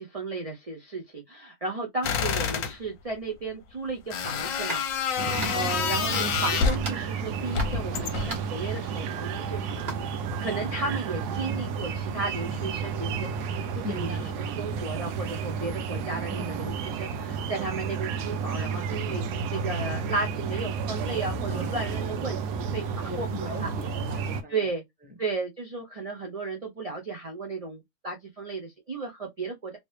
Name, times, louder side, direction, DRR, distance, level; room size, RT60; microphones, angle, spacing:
voice 1, 0.0-4.8 5.1-5.3 5.5-9.9 10.4-13.3 13.7-14.1 14.6-19.2 19.5-22.9 23.2-23.3 23.6-23.7 24.5-24.8 25.2-29.7, right 3 dB, 60° right, 0.3 m, -34 dB
sound 1, 2.0-2.7 4.1-6.9 7.5-8.4, left 6 dB, 65° left, 0.9 m, -28 dB
sound 2, 4.7-4.9 5.4-5.8 6.1-6.5 6.8-7.8 8.3-8.6 9.8-10.0, right 2 dB, 40° right, 1.3 m, -38 dB
sound 3, 5.2-24.4, right 6 dB, 80° right, 1.2 m, -32 dB
voice 2, 5.3-5.7 13.8-14.7 16.3-16.8 21.5-21.9 23.1-24.7 25.0-25.1, left 1 dB, 5° right, 1.0 m, -39 dB
3.1 x 2.8 x 3.1 m
omnidirectional pair, 1.7 m